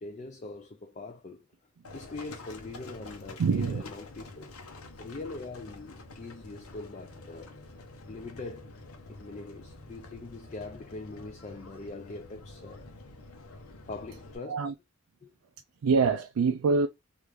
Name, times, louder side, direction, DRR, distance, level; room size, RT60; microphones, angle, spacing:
voice 1, 0.0-1.5 1.9-4.5 5.0-7.6 8.1-8.7 9.1-12.9 13.9-14.7 15.2-15.3, left 3 dB, 30° left, 0.4 m, -42 dB
Livestock farm animals working animals, 1.8-14.4, left 2 dB, 80° left, 0.9 m, -48 dB
voice 2, 3.4-3.8 14.5-14.7 15.8-16.9, right 4 dB, 90° right, 0.4 m, -25 dB
3.4 x 2.5 x 3.1 m
head